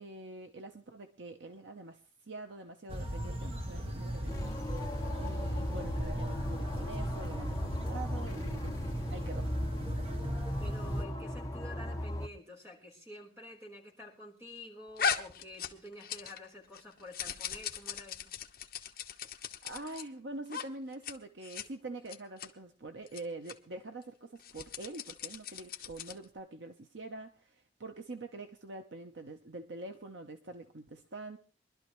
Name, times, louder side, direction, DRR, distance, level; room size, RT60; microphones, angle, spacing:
voice 1, 0.0-4.6 5.2-8.8 9.1-9.5 19.6-31.4, right 2 dB, 75° right, 0.9 m, -45 dB
sound 1, 2.9-11.0, equal, 30° right, 1.4 m, -37 dB
sound 2, 4.3-12.3, left 1 dB, 15° left, 1.0 m, -38 dB
voice 2, 10.6-18.3, left 1 dB, 15° right, 3.9 m, -49 dB
sound 3, 15.0-16.5 16.7-20.0 20.5-20.7 20.9-21.1 21.4-21.7 22.1-22.5 23.1-23.2 23.5-23.6 24.4-26.2, left 7 dB, 50° left, 1.2 m, -38 dB
23.5 x 12.0 x 3.1 m
head